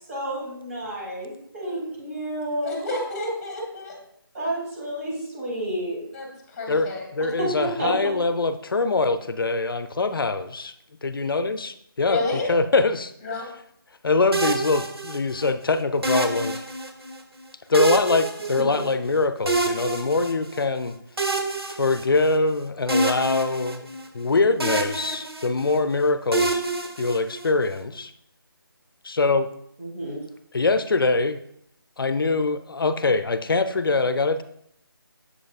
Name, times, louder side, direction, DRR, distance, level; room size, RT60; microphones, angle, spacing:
voice 1, 0.1-2.9 4.3-6.0 7.2-8.1 18.7-18.8 29.8-30.2, right 1 dB, 40° right, -4 dB, 2.9 m, -30 dB
voice 2, 2.6-4.0 6.1-7.1 12.1-12.5 13.2-13.5, left 2 dB, 20° left, 0 dB, 1.3 m, -30 dB
voice 3, 6.7-10.7 11.0-13.1 14.0-16.6 17.7-20.9 21.7-23.9 24.1-26.6 27.0-28.1 29.0-29.5 30.5-31.4 32.0-34.4, left 3 dB, 65° left, 11 dB, 0.6 m, -23 dB
sound 1, 14.3-15.5 16.0-17.2 17.7-19.1 19.5-20.6 21.2-22.5 22.9-24.3 24.6-25.8 26.3-27.7, right 2 dB, 90° right, 1.1 m, -27 dB
7.4 x 6.6 x 2.4 m, 0.72 s
figure-of-eight pair, 160°, 12 cm